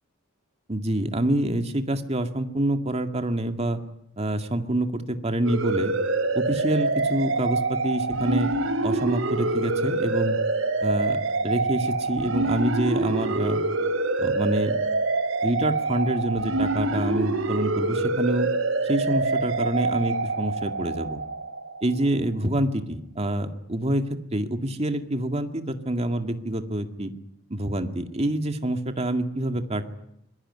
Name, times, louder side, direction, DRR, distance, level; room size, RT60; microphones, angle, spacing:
voice 1, 0.7-3.8 4.2-5.9 6.3-8.5 8.8-10.4 10.8-13.6 14.2-14.8 15.4-18.5 18.8-21.2 21.8-27.1 27.5-29.8, right 1 dB, 30° right, 7 dB, 2.1 m, -27 dB
sound 1, 5.5-21.9, right 3 dB, 80° right, 3.2 m, -26 dB
26.0 x 22.5 x 9.8 m, 0.78 s
head